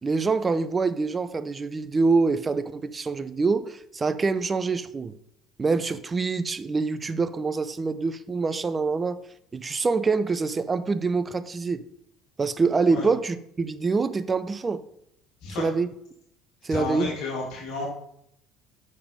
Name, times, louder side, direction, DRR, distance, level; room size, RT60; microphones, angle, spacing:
voice 1, 0.0-5.1 5.6-9.2 9.5-11.8 12.4-14.8 15.6-15.9 16.6-17.1, right 4 dB, 25° right, 0.6 m, -25 dB
voice 2, 16.7-17.9, left 3 dB, 55° left, 1.9 m, -31 dB
6.8 x 5.4 x 5.3 m
figure-of-eight pair, 60°, 0 cm